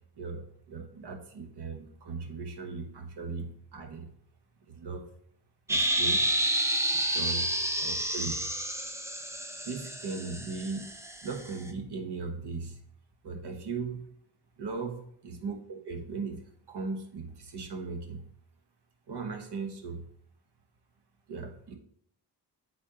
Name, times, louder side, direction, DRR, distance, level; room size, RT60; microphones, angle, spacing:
voice 1, 0.2-4.1 4.7-5.1 5.7-6.3 7.1-7.5 7.8-8.3 9.6-10.9 11.2-12.8 13.2-14.1 14.6-18.2 19.1-20.0 21.3-21.8, right 4 dB, 70° right, 6 dB, 1.2 m, -38 dB
sound 1, 5.7-11.5, right 1 dB, 5° right, 0.7 m, -30 dB
8.6 x 4.2 x 2.9 m, 0.66 s
cardioid pair, 75°, 41 cm